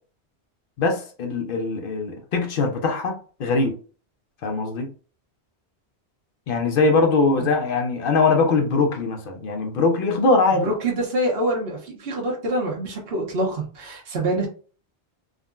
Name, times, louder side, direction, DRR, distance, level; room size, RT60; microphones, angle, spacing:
voice 1, 0.8-3.8 4.4-4.9 6.5-10.7, left 3 dB, 60° left, 0.7 m, -21 dB
voice 2, 10.5-14.5, right 1 dB, 60° right, 1.1 m, -26 dB
3.6 x 2.1 x 2.3 m
omnidirectional pair, 1.1 m